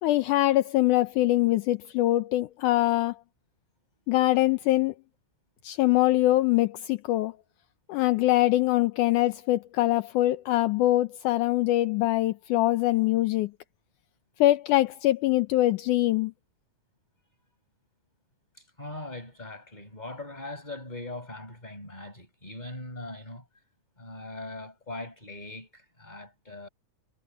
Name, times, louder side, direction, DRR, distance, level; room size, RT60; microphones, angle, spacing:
voice 1, 0.0-3.2 4.1-4.9 5.6-7.4 7.9-13.5 14.4-16.3, left 16 dB, 80° left, 2.2 m, -23 dB
voice 2, 18.8-23.4 24.0-26.7, left 2 dB, 10° left, 6.2 m, -40 dB
omnidirectional pair, 3.7 m